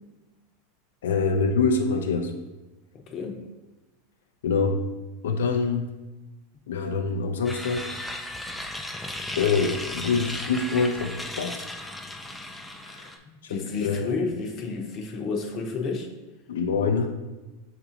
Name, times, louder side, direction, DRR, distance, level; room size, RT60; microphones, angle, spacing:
voice 1, 1.0-2.3 4.4-4.8 5.2-5.9 6.7-8.0 9.3-11.6 12.8-13.1 13.4-14.2 16.5-17.1, left 4 dB, 90° left, 5 dB, 0.4 m, -25 dB
voice 2, 3.1-3.4 13.3-16.1, left 4 dB, 40° left, 2 dB, 0.7 m, -31 dB
sound 1, 7.5-13.2, left 1 dB, 5° left, 0.4 m, -35 dB
6.6 x 2.5 x 2.8 m, 1.1 s
supercardioid pair, 120°, 0 cm